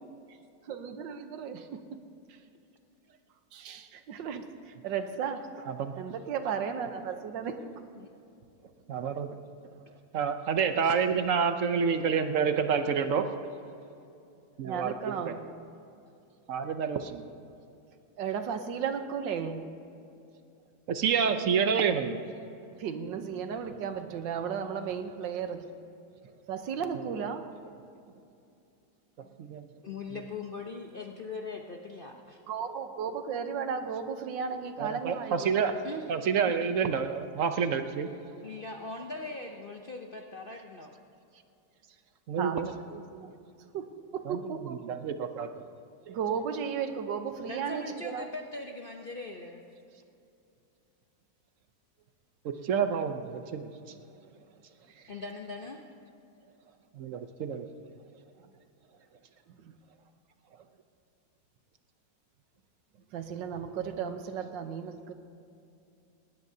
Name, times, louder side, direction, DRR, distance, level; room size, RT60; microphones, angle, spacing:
voice 1, 0.7-2.0 3.5-5.7 6.0-7.7 14.6-15.4 18.2-19.7 22.8-25.7 26.5-27.5 32.5-35.7 42.4-42.6 42.9-43.3 43.7-44.8 46.1-48.3 59.5-59.7 63.1-65.1, right 7 dB, 90° right, 8 dB, 1.6 m, -35 dB
voice 2, 8.9-9.3 10.1-13.4 14.6-15.3 16.5-17.2 20.9-22.2 29.2-29.7 34.8-35.8 36.1-38.1 42.3-42.7 44.3-44.6 44.8-45.5 46.1-46.2 52.4-53.7 56.9-57.7, right 6 dB, 60° right, 8 dB, 0.9 m, -28 dB
voice 3, 29.8-32.4 35.8-36.0 36.4-36.5 38.4-40.9 47.5-49.6 55.1-55.8, left 3 dB, 50° left, 2 dB, 0.6 m, -40 dB
19.0 x 18.5 x 2.8 m, 2.6 s
omnidirectional pair, 1.9 m